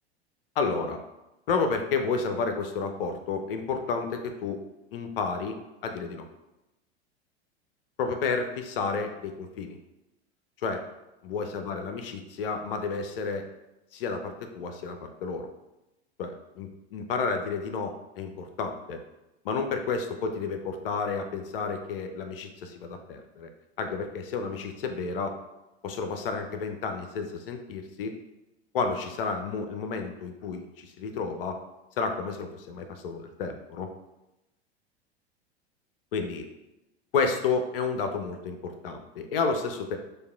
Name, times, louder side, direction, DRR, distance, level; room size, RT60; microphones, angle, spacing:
voice 1, 0.6-1.0 1.5-4.6 4.9-5.6 5.8-6.3 8.0-9.8 10.6-10.8 11.2-13.5 13.9-15.5 16.2-19.0 19.4-23.5 23.8-25.3 25.8-28.1 28.7-31.6 32.0-33.9 36.1-36.5 37.1-40.0, left 4 dB, 60° left, 6 dB, 0.6 m, -31 dB
6.4 x 2.5 x 2.3 m, 0.96 s
figure-of-eight pair, 85°, 32 cm